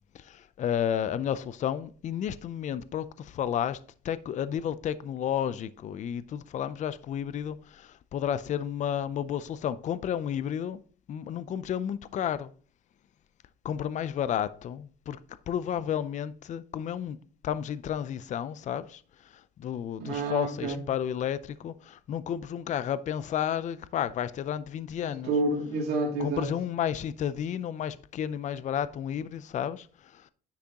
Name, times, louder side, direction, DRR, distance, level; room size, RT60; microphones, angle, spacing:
voice 1, 0.1-3.8 4.0-10.8 11.1-12.5 13.6-15.2 15.5-17.2 17.4-25.3 26.2-30.3, left 9 dB, 45° left, 0.5 m, -32 dB
voice 2, 20.0-20.8 25.0-26.5, right 2 dB, 75° right, 2.6 m, -29 dB
9.9 x 6.0 x 2.9 m
cardioid pair, 110°, 17 cm